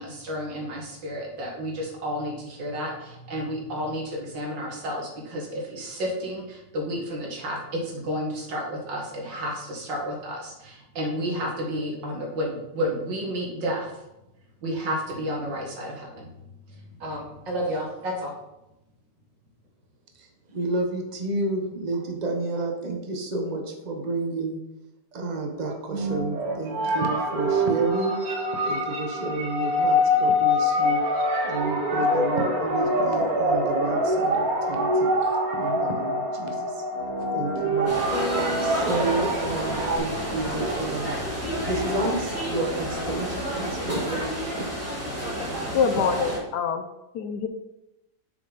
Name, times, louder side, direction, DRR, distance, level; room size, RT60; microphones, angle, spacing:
voice 1, 0.0-14.0 14.6-16.3 16.7-18.3, equal, 80° right, -1 dB, 2.4 m, -31 dB
voice 2, 20.1-24.6 25.1-31.0 31.4-36.8 37.2-38.0 38.6-41.2 41.6-44.9, right 2 dB, 30° right, 3 dB, 0.9 m, -31 dB
sound 1, 25.6-40.0, equal, 55° right, 1.4 m, -25 dB
sound 2, 37.9-46.4, equal, 10° right, 1.9 m, -30 dB
sound 3, 38.1-45.3, left 3 dB, 45° left, 0.4 m, -39 dB
voice 3, 45.7-46.9 47.1-47.5, left 6 dB, 70° left, 8 dB, 1.2 m, -25 dB
6.7 x 6.7 x 4.0 m, 0.91 s
omnidirectional pair, 2.0 m